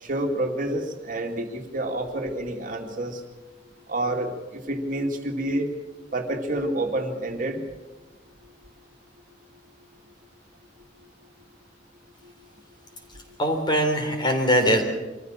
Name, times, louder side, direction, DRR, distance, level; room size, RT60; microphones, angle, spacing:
voice 1, 0.0-3.2 3.9-5.7 6.1-7.6, right 1 dB, 45° right, 2 dB, 2.3 m, -28 dB
voice 2, 13.4-14.8, equal, 25° left, 4 dB, 3.7 m, -21 dB
25.0 x 15.0 x 7.4 m, 1.2 s
head